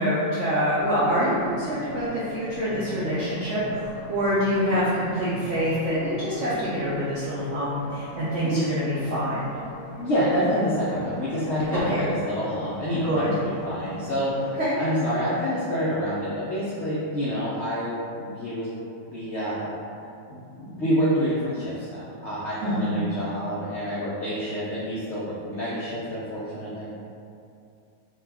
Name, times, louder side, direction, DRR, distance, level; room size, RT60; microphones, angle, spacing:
voice 1, 0.0-9.6 11.7-12.0 13.0-13.3 14.6-14.8 22.6-23.0, equal, 75° right, -10 dB, 0.6 m, -26 dB
sound 1, 0.8-14.5, right 1 dB, 55° left, 1.1 m, -40 dB
voice 2, 10.0-18.7 19.1-19.8 20.3-26.8, equal, 75° left, -10 dB, 0.6 m, -27 dB
2.7 x 2.2 x 3.3 m, 2.5 s
omnidirectional pair, 1.9 m